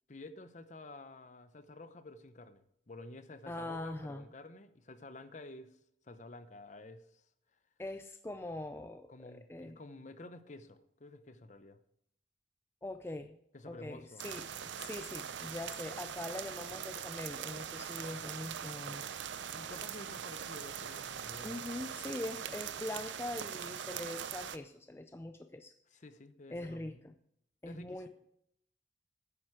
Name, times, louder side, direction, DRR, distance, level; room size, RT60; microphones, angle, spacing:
voice 1, 0.1-5.8 6.1-7.2 9.1-11.8 13.5-14.3 19.5-21.6 25.9-27.1 27.6-28.1, left 2 dB, 40° left, 0.7 m, -51 dB
voice 2, 3.5-4.3 7.8-9.8 12.8-13.4 13.7-14.4 14.8-19.0 21.4-25.7 26.5-27.1 27.6-28.1, left 1 dB, 15° left, 0.4 m, -42 dB
sound 1, 14.2-24.6, right 8 dB, 85° right, 0.6 m, -42 dB
10.0 x 9.3 x 4.8 m
head